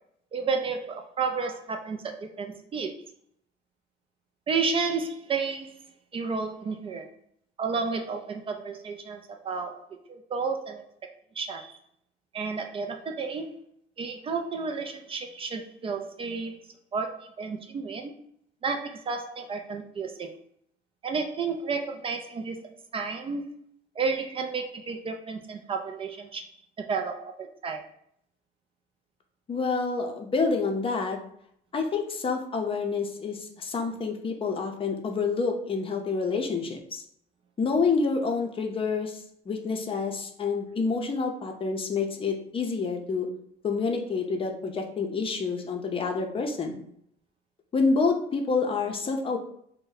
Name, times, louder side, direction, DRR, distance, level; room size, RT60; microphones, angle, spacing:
voice 1, 0.3-3.0 4.5-5.8 6.1-7.1 7.6-10.9 11.4-11.8 12.3-13.5 14.0-16.6 16.9-18.1 18.6-20.3 21.0-22.6 22.9-23.6 24.0-26.5 26.9-27.8, right 4 dB, 35° right, 4 dB, 0.3 m, -31 dB
voice 2, 29.5-31.2 31.7-37.0 37.6-43.3 43.6-46.8 47.7-49.4, left 4 dB, 30° left, 3 dB, 0.5 m, -28 dB
2.6 x 2.1 x 3.8 m, 0.68 s
cardioid pair, 110°, 17 cm